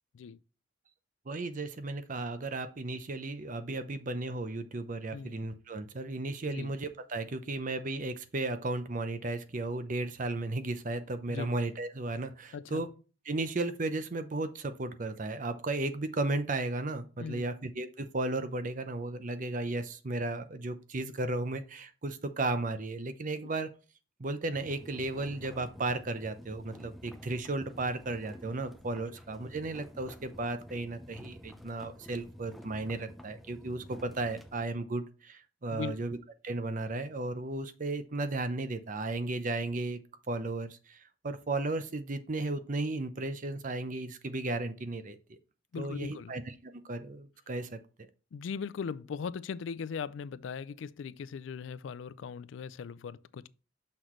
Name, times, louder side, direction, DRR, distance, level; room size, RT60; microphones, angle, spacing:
voice 1, 1.3-12.9 13.3-23.7 24.2-36.2 36.4-40.0 40.3-45.4 45.8-47.8, right 2 dB, 45° right, 0.7 m, -35 dB
voice 2, 12.5-12.9 17.2-17.5 29.1-29.2 35.7-35.9 45.7-46.3 48.3-53.5, left 6 dB, 75° left, 0.4 m, -39 dB
sound 1, 24.5-34.6, equal, ahead, 0.5 m, -50 dB
6.4 x 5.9 x 3.1 m
head